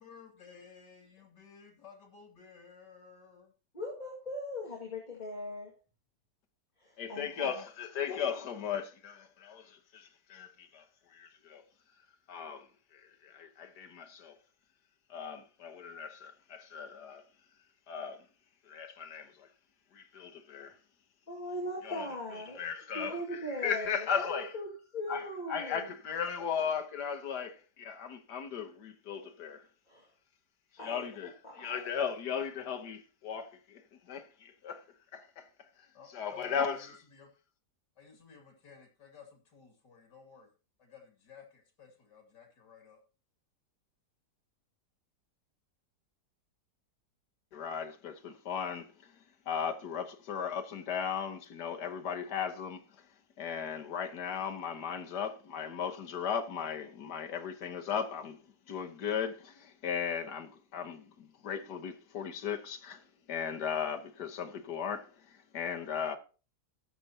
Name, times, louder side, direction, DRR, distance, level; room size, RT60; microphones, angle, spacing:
voice 1, 0.0-3.5 35.9-37.3 38.0-40.5 40.8-43.0, left 6 dB, 90° left, 3.2 m, -54 dB
voice 2, 3.7-5.7 6.8-7.5 21.3-22.6 22.9-25.9 29.9-30.1 30.8-31.1 31.4-31.8, left 1 dB, 25° left, 2.3 m, -39 dB
voice 3, 7.0-10.8 11.1-11.6 12.3-14.4 15.1-17.2 17.9-18.2 18.6-19.5 19.9-20.8 21.8-22.1 22.6-24.5 25.1-29.7 30.7-34.8 35.1-35.5 35.8-35.9 36.1-36.9 47.5-49.2 49.4-53.1 53.4-58.4 58.7-66.2, left 7 dB, 75° left, 1.7 m, -37 dB
19.5 x 6.8 x 2.9 m
omnidirectional pair, 1.8 m